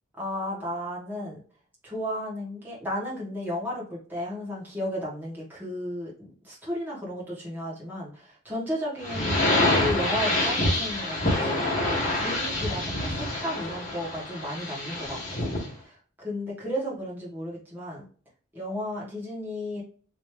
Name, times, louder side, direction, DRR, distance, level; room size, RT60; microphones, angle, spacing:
voice 1, 0.2-1.4 1.8-15.5 15.8-18.0 18.5-19.8, left 1 dB, 10° right, -6 dB, 1.5 m, -34 dB
sound 1, 9.0-15.7, left 1 dB, 35° left, 1.2 m, -26 dB
3.0 x 3.0 x 3.3 m, 0.43 s
head